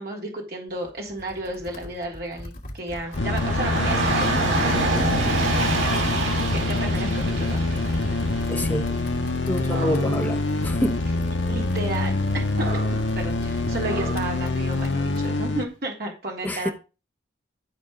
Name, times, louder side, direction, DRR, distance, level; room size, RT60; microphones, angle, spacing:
voice 1, 0.0-4.8 5.8-6.0 6.5-7.6 11.5-12.4 13.1-16.7, right 2 dB, 50° right, 3.1 m, -33 dB
Computer keyboard, 0.7-15.3, left 1 dB, 45° left, 2.6 m, -43 dB
Dog / Rain, 3.1-15.3, right 2 dB, 80° right, 4.0 m, -29 dB
sound 1, 3.2-15.7, left 2 dB, 75° left, 1.0 m, -25 dB
voice 2, 8.5-8.9 9.5-11.0 16.4-16.7, equal, 10° left, 1.1 m, -27 dB
12.5 x 4.3 x 5.3 m
head